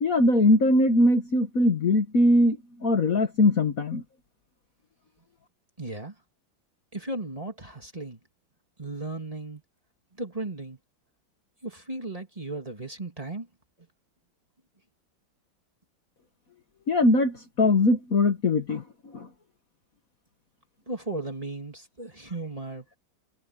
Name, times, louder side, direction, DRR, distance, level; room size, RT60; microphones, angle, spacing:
voice 1, 0.0-4.0 16.9-18.8 19.1-19.3, left 1 dB, 45° left, 1.8 m, -21 dB
voice 2, 5.8-6.1 6.9-8.2 8.8-9.6 10.2-10.8 11.6-13.5 20.9-22.8, right 2 dB, 15° right, 2.5 m, -35 dB
omnidirectional pair, 2.2 m